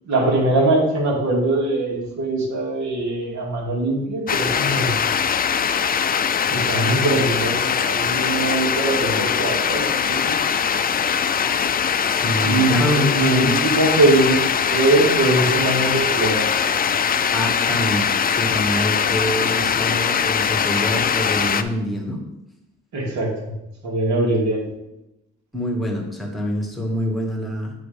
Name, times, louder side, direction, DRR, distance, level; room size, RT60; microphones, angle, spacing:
voice 1, 0.1-5.0 6.5-10.4 12.4-14.4 14.7-16.5 22.9-23.5 23.8-24.7, right 2 dB, 70° right, -2 dB, 2.6 m, -21 dB
sound 1, 4.3-21.6, left 7 dB, 30° left, 0.4 m, -21 dB
voice 2, 12.1-13.6 17.3-22.2 25.5-27.7, equal, ahead, 0 dB, 1.8 m, -25 dB
8.5 x 3.9 x 5.2 m, 0.91 s
cardioid pair, 90°, 30 cm